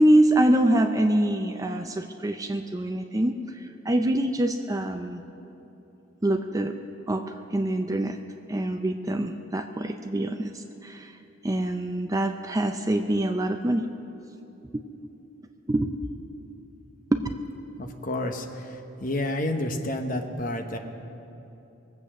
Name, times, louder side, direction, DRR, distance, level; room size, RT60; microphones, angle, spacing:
voice 1, 0.0-3.4 3.9-5.2 6.2-6.8 7.1-8.2 8.5-11.1 11.4-13.9 14.7-14.8 15.7-15.9 17.1-17.2, right 1 dB, 15° right, 6 dB, 0.4 m, -24 dB
voice 2, 17.8-20.8, left 1 dB, 40° left, 5 dB, 1.0 m, -30 dB
22.0 x 8.2 x 6.2 m, 2.9 s
head